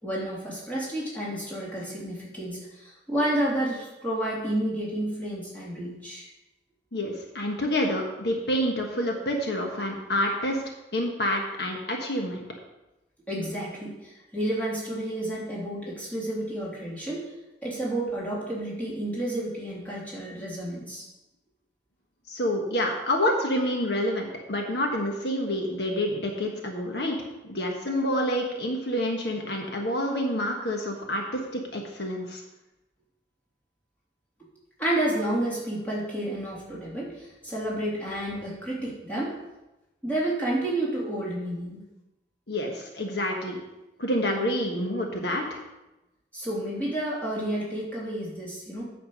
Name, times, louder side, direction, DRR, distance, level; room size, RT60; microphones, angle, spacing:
voice 1, 0.0-6.3 13.3-17.2 17.6-21.0 34.8-39.4 40.0-41.8 46.3-48.8, right 1 dB, 10° left, -6 dB, 3.1 m, -30 dB
voice 2, 6.9-10.6 10.9-12.4 22.3-27.2 27.4-32.4 42.5-43.6 44.0-45.6, left 1 dB, 70° left, 1 dB, 1.3 m, -28 dB
9.2 x 6.9 x 5.3 m, 1.0 s
head